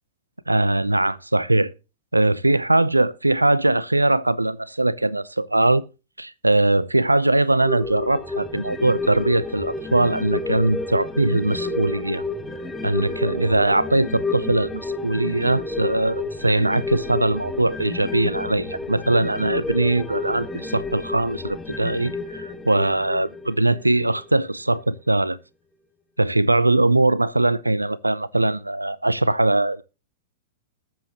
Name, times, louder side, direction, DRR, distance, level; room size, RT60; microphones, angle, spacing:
voice 1, 0.5-1.7 2.1-5.8 6.2-12.2 12.8-25.4 26.2-29.8, right 2 dB, 85° right, 0.7 m, -21 dB
sound 1, 7.6-24.4 24.8-24.9, left 3 dB, 10° left, 1.4 m, -31 dB
20.0 x 7.5 x 3.0 m
figure-of-eight pair, 100°, 0 cm